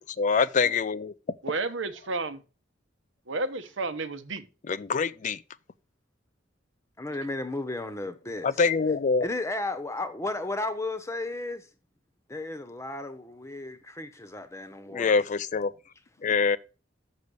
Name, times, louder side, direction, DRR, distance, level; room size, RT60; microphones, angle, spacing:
voice 1, 0.1-1.1 4.7-5.4 8.4-9.3 14.9-15.7 16.2-16.6, left 5 dB, 40° left, 0.4 m, -25 dB
voice 2, 1.4-2.4 3.3-4.5, right 3 dB, 85° right, 1.2 m, -31 dB
voice 3, 7.0-8.5 9.2-11.7 12.3-15.1, left 2 dB, 15° left, 1.0 m, -34 dB
6.8 x 6.4 x 6.3 m
head